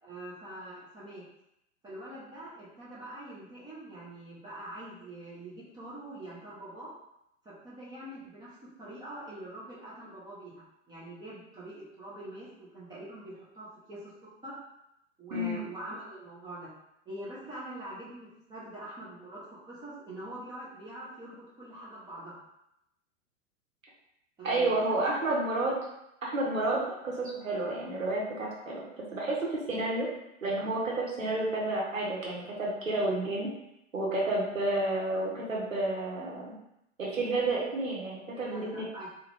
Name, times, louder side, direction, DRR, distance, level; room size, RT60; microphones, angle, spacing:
voice 1, 0.0-1.2 1.8-6.9 7.4-12.5 12.7-14.1 14.4-14.5 15.2-16.7 17.1-22.4 24.4-25.3 38.3-39.1, right 1 dB, 10° right, -9 dB, 0.4 m, -44 dB
voice 2, 24.4-25.8 26.2-29.4 29.7-30.1 30.4-33.5 33.9-36.6 37.0-38.9, right 2 dB, 90° right, -4 dB, 0.7 m, -30 dB
2.3 x 2.1 x 3.1 m, 0.82 s
figure-of-eight pair, 95°, 38 cm